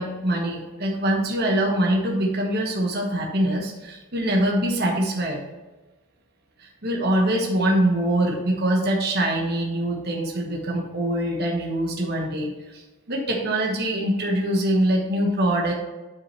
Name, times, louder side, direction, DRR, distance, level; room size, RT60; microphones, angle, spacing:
voice 1, 0.0-5.4 6.6-12.8 13.1-15.7, right 1 dB, 45° right, 0 dB, 1.3 m, -24 dB
10.0 x 4.8 x 3.3 m, 1.1 s
head